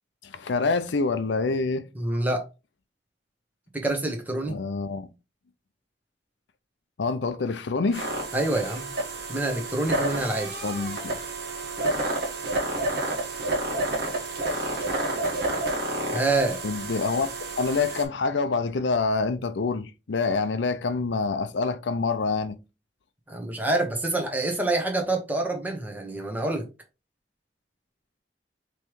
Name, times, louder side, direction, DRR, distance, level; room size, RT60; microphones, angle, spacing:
voice 1, 0.2-1.9 4.5-5.1 7.0-8.2 8.5-8.6 10.6-11.2 16.6-17.3 17.6-22.6, left 4 dB, 85° left, 0.6 m, -26 dB
voice 2, 2.0-2.4 3.7-4.6 8.3-8.9 9.3-10.6 16.1-16.6 23.3-26.6, right 2 dB, 10° right, 1.1 m, -26 dB
sound 1, 7.9-18.0, right 2 dB, 60° right, 1.5 m, -30 dB
5.5 x 3.1 x 3.1 m
head